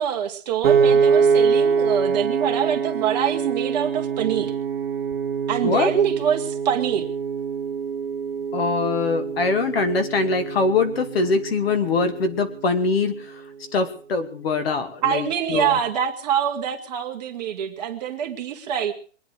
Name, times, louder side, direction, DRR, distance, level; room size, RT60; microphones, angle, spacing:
voice 1, 0.0-4.5 5.5-7.1 15.0-18.9, right 8 dB, 30° right, 3 dB, 1.9 m, -25 dB
Piano, 0.6-12.9, right 6 dB, 50° right, 1.2 m, -24 dB
voice 2, 8.5-13.4 13.7-15.8, left 4 dB, 50° left, 9 dB, 2.5 m, -23 dB
23.0 x 9.7 x 6.3 m, 0.43 s
hypercardioid pair, 165°, 39 cm